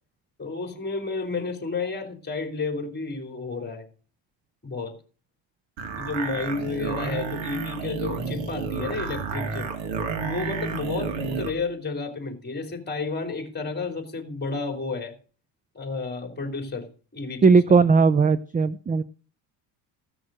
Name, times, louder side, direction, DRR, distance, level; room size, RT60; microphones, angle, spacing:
voice 1, 0.4-3.8 4.6-5.0 6.0-9.7 10.2-15.1 15.7-16.9 17.1-17.8, left 3 dB, 20° left, 4 dB, 3.4 m, -31 dB
sound 1, 5.8-11.6, right 5 dB, 75° right, 2.4 m, -31 dB
voice 2, 17.4-19.0, right 4 dB, 20° right, 15 dB, 0.5 m, -18 dB
15.5 x 6.3 x 6.2 m, 0.39 s
cardioid pair, 100°, 45 cm